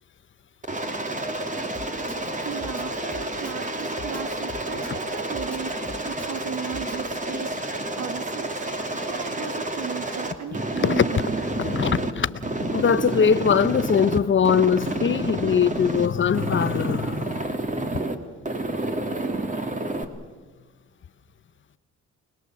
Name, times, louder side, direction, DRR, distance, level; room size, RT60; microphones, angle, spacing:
Aircraft, 0.6-12.1 12.4-14.2 14.4-16.1 16.3-18.1 18.5-20.0, right 2 dB, 25° right, 2.6 m, -29 dB
Drum kit, 1.7-7.1, left 2 dB, 5° left, 1.8 m, -41 dB
voice 1, 2.4-7.6 8.0-8.5 9.0-11.4, right 7 dB, 65° right, 1.9 m, -36 dB
voice 2, 11.5-17.5, left 7 dB, 40° left, 0.9 m, -22 dB
25.0 x 20.5 x 7.7 m
cardioid pair, 90°, 30 cm